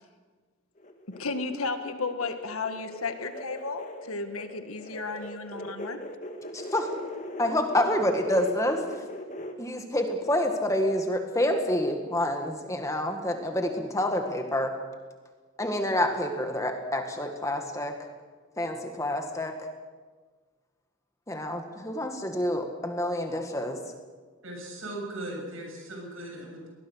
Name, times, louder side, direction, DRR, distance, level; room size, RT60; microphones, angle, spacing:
sound 1, 0.8-9.5, left 1 dB, 35° left, 1.8 m, -40 dB
voice 1, 1.1-6.0, left 4 dB, 90° left, 8 dB, 1.7 m, -34 dB
voice 2, 6.5-6.9 7.4-8.8 9.6-14.7 15.6-18.0 18.6-19.5 21.3-23.8, left 1 dB, 15° left, 4 dB, 1.8 m, -28 dB
voice 3, 24.4-26.7, right 1 dB, 75° right, 1 dB, 7.1 m, -38 dB
22.5 x 19.5 x 6.5 m, 1.4 s
head